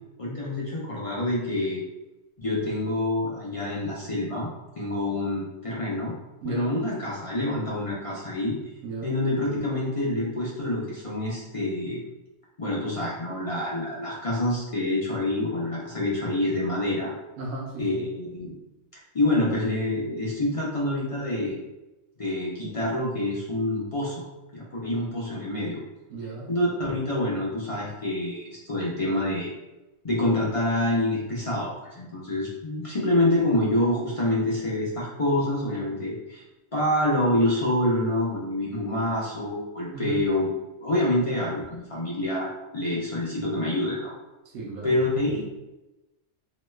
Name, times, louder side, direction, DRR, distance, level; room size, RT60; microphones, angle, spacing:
voice 1, 0.2-1.8 2.4-4.5 4.8-6.1 6.4-8.6 9.0-12.0 12.6-17.1 17.8-18.5 19.1-21.6 22.2-24.2 24.5-25.8 26.5-29.5 30.0-36.4 36.7-40.5 40.8-44.1 44.8-45.6, left 1 dB, 45° left, -5 dB, 0.4 m, -27 dB
voice 2, 17.4-18.1 26.1-26.5 39.9-40.2 44.5-45.0, right 3 dB, 75° right, -4 dB, 1.0 m, -34 dB
2.9 x 2.2 x 3.1 m, 1.0 s
omnidirectional pair, 1.3 m